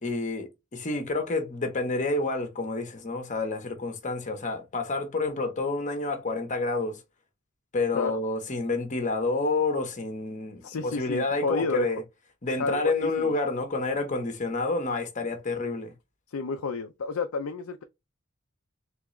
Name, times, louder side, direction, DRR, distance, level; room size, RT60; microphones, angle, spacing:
voice 1, 0.0-7.0 7.7-12.0 12.4-15.9, left 3 dB, 35° left, 1.0 m, -29 dB
voice 2, 10.6-11.9 12.6-13.3 16.3-17.8, left 4 dB, 90° left, 0.5 m, -31 dB
3.7 x 3.4 x 3.1 m
head